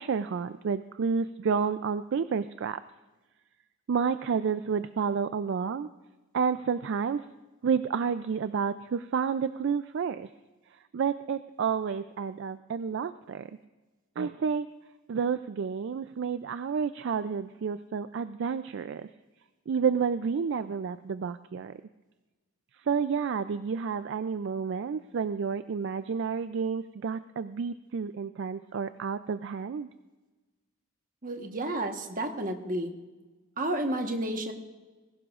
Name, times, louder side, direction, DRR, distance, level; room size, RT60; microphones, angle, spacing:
voice 1, 0.0-2.8 3.9-5.9 6.3-7.2 7.6-10.3 10.9-13.5 14.2-14.7 15.1-19.1 19.7-21.8 22.9-29.9, right 6 dB, 60° right, 12 dB, 0.3 m, -30 dB
voice 2, 31.2-32.9 33.6-34.5, right 1 dB, 40° right, 4 dB, 1.2 m, -31 dB
20.0 x 17.0 x 2.5 m, 1.2 s
head